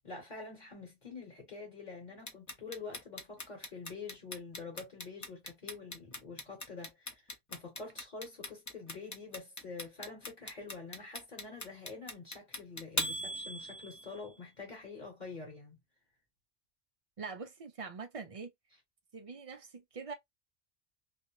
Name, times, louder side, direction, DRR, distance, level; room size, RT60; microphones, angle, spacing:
voice 1, 0.0-15.8, left 4 dB, 45° left, 1.1 m, -46 dB
Clock, 2.3-14.2, left 1 dB, 25° left, 0.4 m, -39 dB
voice 2, 17.2-18.5 19.1-20.1, right 4 dB, 50° right, 0.4 m, -43 dB
2.5 x 2.1 x 2.9 m
omnidirectional pair, 1.1 m